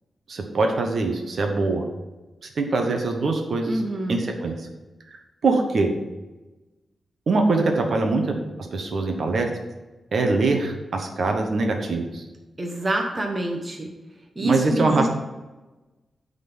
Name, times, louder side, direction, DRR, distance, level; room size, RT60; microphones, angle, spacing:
voice 1, 0.3-1.8 2.6-3.7 4.1-4.5 5.4-5.9 7.3-9.5 10.1-12.2 14.4-15.1, right 3 dB, 55° right, 3 dB, 1.2 m, -23 dB
voice 2, 3.7-4.3 12.6-13.9 14.4-15.1, right 1 dB, 20° right, 1 dB, 0.9 m, -26 dB
9.0 x 4.1 x 7.1 m, 1.1 s
wide cardioid pair, 165°, 0 cm